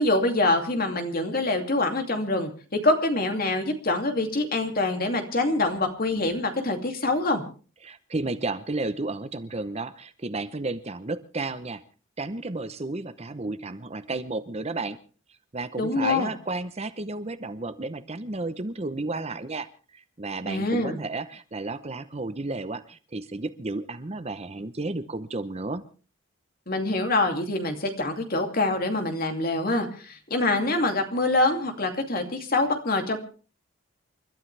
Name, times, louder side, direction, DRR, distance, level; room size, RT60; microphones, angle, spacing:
voice 1, 0.0-7.4 15.8-16.3 20.5-21.0 26.7-33.2, left 2 dB, 45° left, 5 dB, 2.6 m, -25 dB
voice 2, 7.8-11.8 12.2-15.0 15.5-19.7 19.9-25.8, right 2 dB, 30° right, 12 dB, 0.8 m, -32 dB
29.0 x 12.5 x 3.4 m, 0.39 s
head